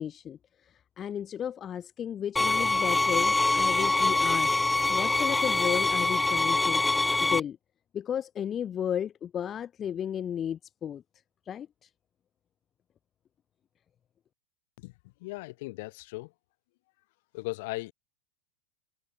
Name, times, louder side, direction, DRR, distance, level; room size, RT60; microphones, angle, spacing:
voice 1, 0.0-7.6 7.9-11.0 11.5-11.9, left 9 dB, 25° left, 1.1 m, -34 dB
sound 1, 2.4-7.4, left 2 dB, 5° left, 0.4 m, -24 dB
voice 2, 15.2-16.3 17.3-17.9, left 23 dB, 50° left, 3.8 m, -37 dB
figure-of-eight pair, 90°, 0 cm